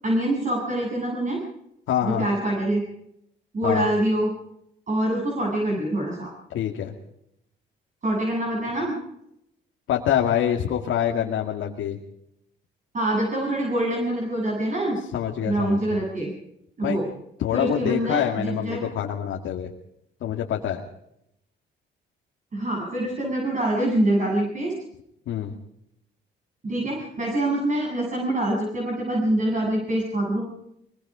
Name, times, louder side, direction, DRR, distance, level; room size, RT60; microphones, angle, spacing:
voice 1, 0.0-1.4 2.0-2.8 3.5-4.3 4.9-6.3 8.0-9.0 12.9-15.0 15.4-16.3 16.8-17.1 17.5-18.8 22.5-24.7 26.6-30.4, right 1 dB, 40° right, -2 dB, 8.0 m, -25 dB
voice 2, 1.9-2.3 3.6-3.8 6.5-6.9 9.9-12.0 15.1-16.0 16.8-17.0 17.4-19.7 20.2-20.8 25.3-25.5, left 10 dB, 80° left, 1 dB, 2.2 m, -25 dB
23.0 x 23.0 x 5.1 m, 0.79 s
cardioid pair, 90°, 20 cm